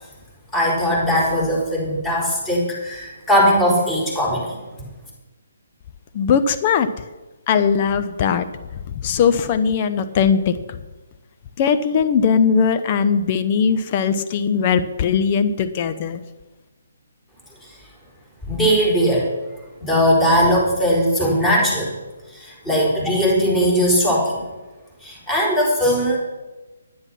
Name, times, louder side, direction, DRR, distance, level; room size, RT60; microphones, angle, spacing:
voice 1, 0.5-4.6 18.4-19.3 19.8-21.9 22.3-24.4 25.0-26.2, equal, 10° left, -4 dB, 4.4 m, -19 dB
voice 2, 6.1-6.9 7.5-8.5 9.0-10.5 11.6-16.2, left 6 dB, 30° left, 10 dB, 0.6 m, -19 dB
10.5 x 9.8 x 5.9 m, 1.1 s
figure-of-eight pair, 140°, 0 cm